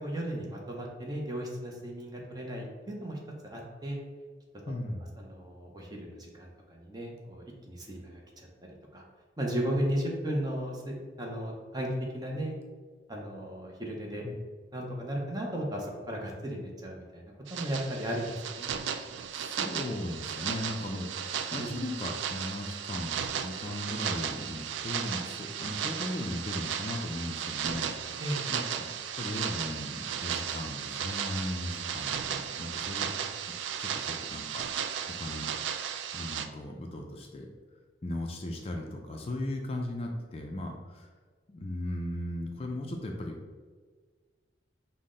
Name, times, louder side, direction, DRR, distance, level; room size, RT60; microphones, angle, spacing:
voice 1, 0.0-4.0 5.2-8.5 8.9-9.0 9.4-12.5 13.1-14.3 14.7-18.7 21.6-21.7 28.2-28.4, equal, 20° right, -1 dB, 0.6 m, -35 dB
voice 2, 4.7-5.1 14.2-14.4 19.3-28.9 29.2-33.3 33.8-35.5 36.1-37.5 38.0-41.1 41.5-43.4, left 1 dB, 30° left, 1 dB, 0.3 m, -37 dB
sound 1, 17.5-36.5, right 8 dB, 85° right, 0.3 m, -35 dB
5.6 x 2.1 x 3.7 m, 1.5 s
head